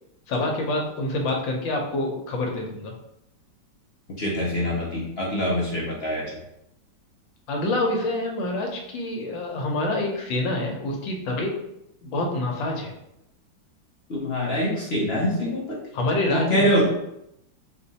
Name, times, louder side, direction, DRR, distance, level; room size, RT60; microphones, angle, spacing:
voice 1, 0.3-2.9 7.5-11.5 12.0-12.9 15.9-16.6, left 2 dB, 80° left, 1 dB, 1.6 m, -26 dB
voice 2, 4.2-6.4 14.1-15.6 16.3-16.9, equal, 50° left, -5 dB, 0.8 m, -24 dB
4.1 x 2.6 x 4.1 m, 0.82 s
omnidirectional pair, 2.0 m